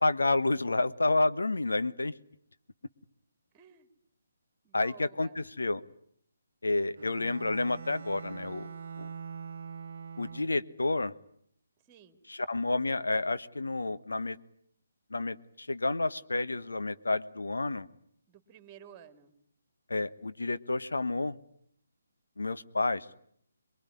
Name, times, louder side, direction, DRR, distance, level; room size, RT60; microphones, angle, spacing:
voice 1, 0.0-2.1 4.7-5.8 6.6-8.7 9.0-9.1 10.2-11.1 12.3-14.4 15.1-17.9 19.9-21.4 22.4-23.1, left 2 dB, 75° left, 12 dB, 1.2 m, -30 dB
voice 2, 3.5-3.9 4.6-5.4 11.9-12.2 18.3-19.3, right 9 dB, 20° right, 10 dB, 2.4 m, -53 dB
Bowed string instrument, 7.0-10.8, right 6 dB, 55° right, 1.1 m, -43 dB
24.0 x 22.5 x 9.7 m, 0.68 s
figure-of-eight pair, 145°, 0 cm